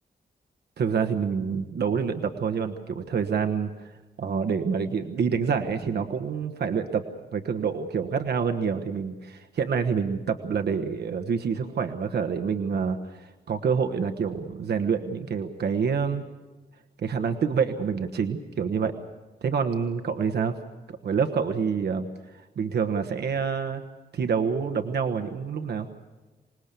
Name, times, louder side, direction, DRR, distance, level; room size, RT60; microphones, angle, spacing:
voice 1, 0.8-3.9 4.2-7.0 7.3-16.2 17.0-18.9 19.4-20.6 20.9-22.1 22.6-23.8 24.1-25.9, right 6 dB, 80° right, 6 dB, 1.3 m, -27 dB
26.0 x 19.5 x 6.9 m, 1.2 s
wide cardioid pair, 150°, 17 cm